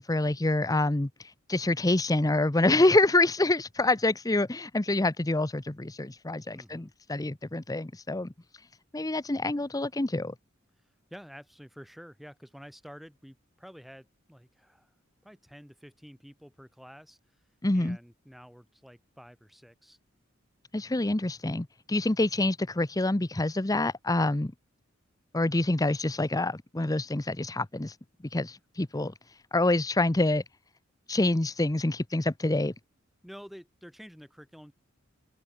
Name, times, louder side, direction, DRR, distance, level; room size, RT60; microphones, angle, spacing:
voice 1, 0.0-8.3 8.9-10.3 17.6-18.0 20.7-24.5 25.3-28.0 28.3-29.1 29.5-30.4 31.1-32.7, left 2 dB, 20° left, 0.7 m, -26 dB
voice 2, 6.5-6.9 11.1-14.9 15.2-17.2 17.7-20.0 33.2-34.7, equal, ahead, 7.5 m, -49 dB
head